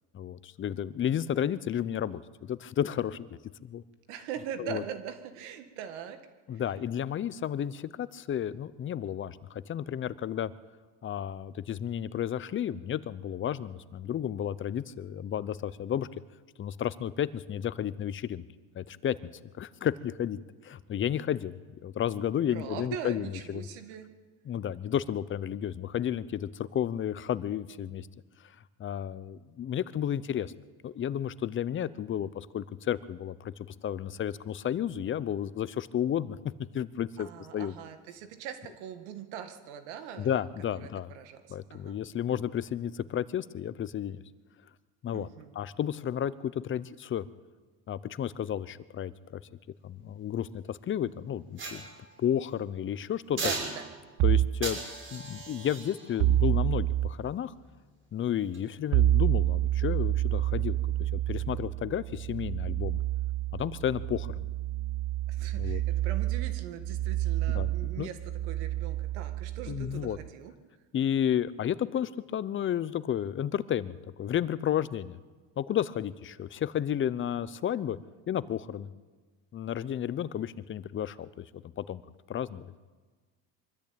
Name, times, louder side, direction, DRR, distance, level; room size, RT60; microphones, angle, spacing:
voice 1, 0.1-3.3 3.6-3.8 4.6-4.8 6.5-10.5 11.0-16.1 16.6-18.4 18.7-19.2 19.6-23.7 24.5-28.1 28.8-30.5 30.8-33.5 33.8-36.4 36.7-37.3 37.5-37.7 40.2-41.1 41.5-44.2 45.0-45.3 45.5-47.2 47.9-49.4 49.8-51.9 52.2-53.4 54.2-54.8 55.1-57.5 58.1-63.0 63.5-64.5 65.5-65.8 67.5-68.1 69.7-70.2 70.9-75.2 75.6-78.0 78.3-78.9 79.5-81.4 81.8-82.0 82.3-82.7, left 10 dB, 35° left, 17 dB, 0.8 m, -32 dB
voice 2, 4.1-6.2 6.5-6.6 22.5-24.1 37.2-40.5 40.8-42.0 45.1-45.5 53.4-53.9 65.3-70.5, right 9 dB, 90° right, 8 dB, 2.1 m, -41 dB
sound 1, 51.6-52.6 53.4-54.2 54.6-57.8 58.4-58.6, right 3 dB, 35° right, 6.3 m, -39 dB
sound 2, 54.2-54.6 56.2-57.1 58.9-70.3, right 14 dB, 60° right, 0.9 m, -28 dB
24.0 x 13.5 x 8.8 m, 1.4 s
supercardioid pair, 110°, 34 cm